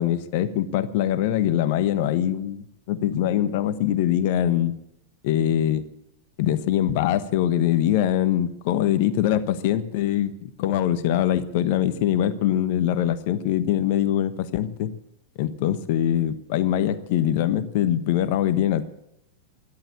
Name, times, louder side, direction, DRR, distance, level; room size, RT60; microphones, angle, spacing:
voice 1, 0.0-4.8 5.2-5.9 6.4-14.9 15.4-18.8, left 11 dB, 50° left, 13 dB, 1.2 m, -23 dB
13.5 x 12.0 x 8.5 m, 0.80 s
figure-of-eight pair, 95°, 0 cm